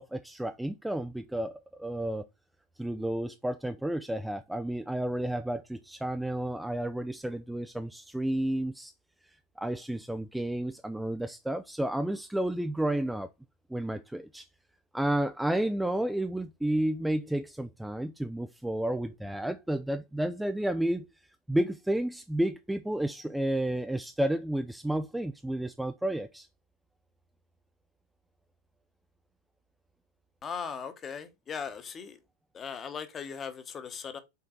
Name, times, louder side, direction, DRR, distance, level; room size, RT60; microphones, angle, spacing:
voice 1, 0.0-2.2 2.8-8.9 9.6-13.3 13.7-14.5 14.9-21.1 21.5-26.5, right 1 dB, 5° right, 0.4 m, -31 dB
voice 2, 30.4-32.2 32.5-34.2, left 6 dB, 25° left, 1.1 m, -38 dB
5.7 x 4.5 x 3.9 m
figure-of-eight pair, 90°, 0 cm